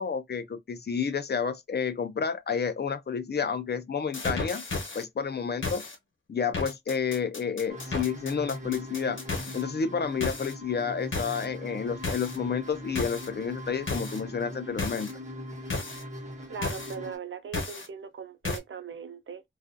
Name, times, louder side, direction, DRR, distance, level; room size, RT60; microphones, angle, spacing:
voice 1, 0.0-4.6 4.9-5.8 6.3-9.2 9.5-15.1, left 6 dB, 55° left, 0.5 m, -30 dB
sound 1, 4.1-5.0 5.6-6.0 6.5-9.6 10.2-10.5 11.1-11.5 12.0-12.4 13.0-13.3 13.9-14.2 14.8-15.1 15.7-16.0 16.6-16.9 17.5-17.9 18.5-18.6, left 3 dB, 75° left, 0.9 m, -33 dB
sound 2, 7.7-17.2, left 1 dB, 35° right, 1.0 m, -41 dB
voice 2, 16.5-19.4, right 7 dB, 80° right, 0.5 m, -39 dB
2.4 x 2.3 x 2.5 m
wide cardioid pair, 95°, 20 cm